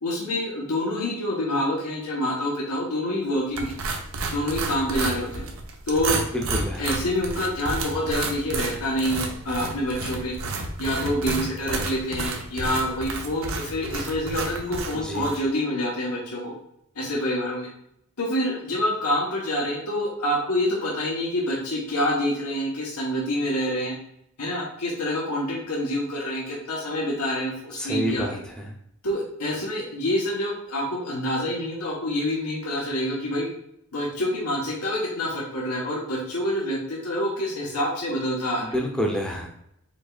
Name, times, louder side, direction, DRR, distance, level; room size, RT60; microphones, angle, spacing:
voice 1, 0.0-3.7 4.3-5.5 5.9-6.2 6.8-10.3 10.8-16.5 16.9-17.7 18.2-23.9 24.4-28.4 29.0-33.5 33.9-38.7, left 1 dB, 85° left, -4 dB, 1.3 m, -27 dB
sound 1, 3.6-15.4, right 3 dB, 65° right, 0.8 m, -31 dB
voice 2, 6.3-6.8 14.9-15.3 27.8-28.7 38.6-39.5, equal, 5° left, 0 dB, 0.8 m, -28 dB
5.1 x 3.9 x 2.4 m, 0.75 s
head